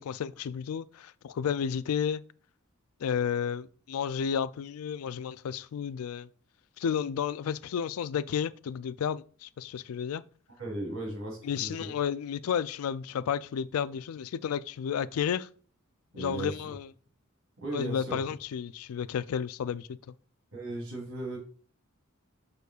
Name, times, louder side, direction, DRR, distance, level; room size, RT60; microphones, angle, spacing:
voice 1, 0.0-2.2 3.0-6.3 6.8-10.2 11.4-15.5 16.2-16.9 17.7-19.9, left 7 dB, 85° left, 0.4 m, -32 dB
voice 2, 10.6-11.9 16.1-16.7 17.6-18.2 20.5-21.4, right 2 dB, 70° right, 3.2 m, -37 dB
6.8 x 6.4 x 2.4 m
head